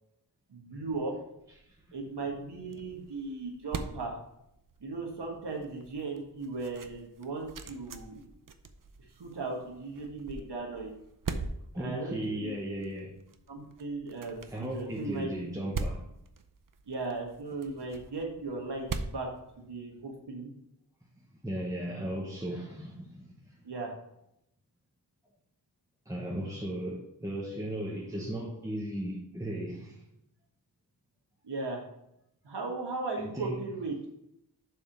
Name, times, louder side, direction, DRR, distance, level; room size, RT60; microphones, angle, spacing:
voice 1, 0.5-1.1 1.9-4.1 4.8-8.2 9.2-10.9 11.8-12.5 13.5-15.3 16.9-19.3 19.6-20.5 23.6-23.9 31.4-31.8 32.4-34.1, right 3 dB, 70° right, -1 dB, 1.5 m, -37 dB
sound 1, 1.4-20.2, right 4 dB, 50° right, 0.7 m, -43 dB
voice 2, 11.7-13.1 14.5-16.0 21.4-23.6 26.1-30.0 33.2-33.6, right 1 dB, 10° right, -3 dB, 1.0 m, -36 dB
7.0 x 3.7 x 6.0 m, 0.79 s
wide cardioid pair, 60°, 42 cm